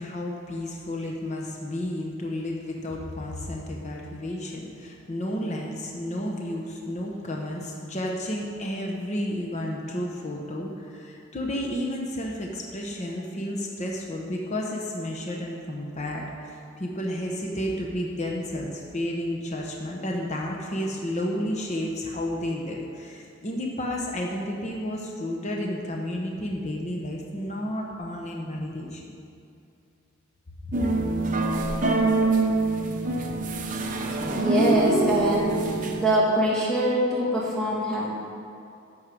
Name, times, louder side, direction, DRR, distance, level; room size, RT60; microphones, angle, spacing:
voice 1, 0.0-29.2 30.7-30.8, left 1 dB, 35° left, -1 dB, 0.9 m, -31 dB
sound 1, 30.7-36.0, right 2 dB, 40° right, 0.7 m, -25 dB
voice 2, 34.3-38.1, right 1 dB, ahead, -8 dB, 2.3 m, -24 dB
11.0 x 7.2 x 4.8 m, 2.5 s
head